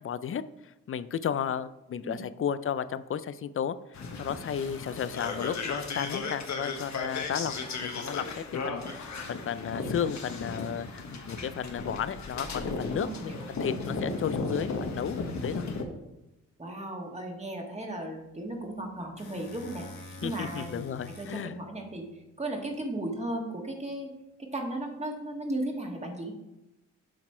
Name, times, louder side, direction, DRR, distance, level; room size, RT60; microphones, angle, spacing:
voice 1, 0.0-3.8 4.2-15.7 20.2-21.6, left 8 dB, 40° left, 15 dB, 0.5 m, -33 dB
sound 1, 3.9-15.8, left 3 dB, 60° left, 1.1 m, -35 dB
sound 2, 4.6-6.3 7.5-8.2 10.2-10.3 11.6-13.1 18.6-22.8, left 3 dB, 90° left, 1.2 m, -49 dB
voice 2, 12.5-13.5 16.6-20.8 21.2-24.1 24.5-26.4, right 1 dB, 20° right, 1 dB, 1.8 m, -36 dB
7.6 x 4.0 x 4.4 m, 0.95 s
supercardioid pair, 60°, 32 cm